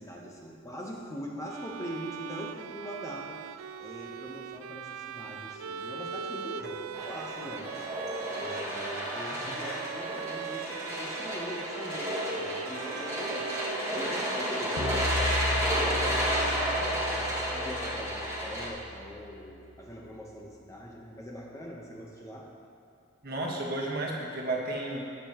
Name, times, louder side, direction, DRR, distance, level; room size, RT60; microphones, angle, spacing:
voice 1, 0.0-16.6 17.1-22.5, equal, 15° left, -2 dB, 1.0 m, -42 dB
Bowed string instrument, 1.5-17.4, right 7 dB, 80° right, 0.3 m, -41 dB
sound 1, 6.9-18.7, equal, 15° right, 1.6 m, -32 dB
sound 2, 14.8-20.1, left 3 dB, 85° left, 0.6 m, -36 dB
voice 2, 23.2-25.0, right 2 dB, 50° right, -2 dB, 1.5 m, -32 dB
17.0 x 6.9 x 3.0 m, 2.4 s
head